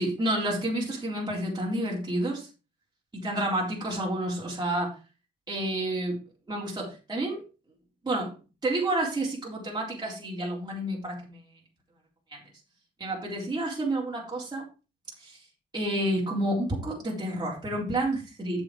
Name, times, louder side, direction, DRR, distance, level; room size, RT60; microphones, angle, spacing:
voice 1, 0.0-2.5 3.1-4.9 5.5-6.2 6.5-7.4 8.0-8.4 8.6-11.5 12.3-12.4 13.0-14.6 15.2-15.4 15.7-18.6, right 1 dB, 20° right, -4 dB, 3.8 m, -29 dB
8.1 x 6.3 x 4.9 m, 0.32 s
cardioid pair, 90°, 20 cm